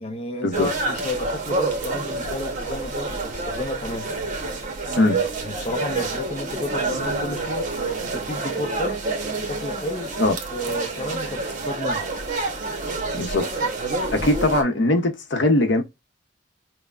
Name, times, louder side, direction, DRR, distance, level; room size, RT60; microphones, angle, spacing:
voice 1, 0.0-4.1 5.1-7.7 8.0-9.0 9.4-10.2 10.5-12.0, left 1 dB, 35° left, 0.6 m, -31 dB
sound 1, 0.5-14.6, right 3 dB, 45° right, 1.0 m, -28 dB
voice 2, 13.1-13.4 14.1-15.8, left 1 dB, 70° left, 0.7 m, -20 dB
5.4 x 2.1 x 2.4 m
head